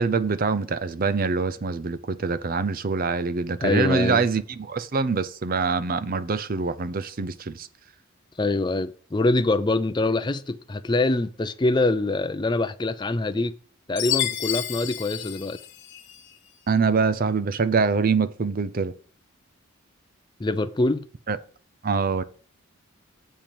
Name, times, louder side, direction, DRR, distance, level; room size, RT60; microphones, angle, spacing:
voice 1, 0.0-7.7 16.7-18.9 21.3-21.4 21.8-22.2, right 4 dB, 40° right, 0.5 m, -24 dB
voice 2, 3.6-4.2 8.4-13.5 13.9-15.6 20.4-21.0, left 2 dB, 20° left, 0.4 m, -24 dB
Chime, 14.0-16.3, left 12 dB, 55° left, 1.0 m, -30 dB
7.5 x 4.5 x 6.9 m
head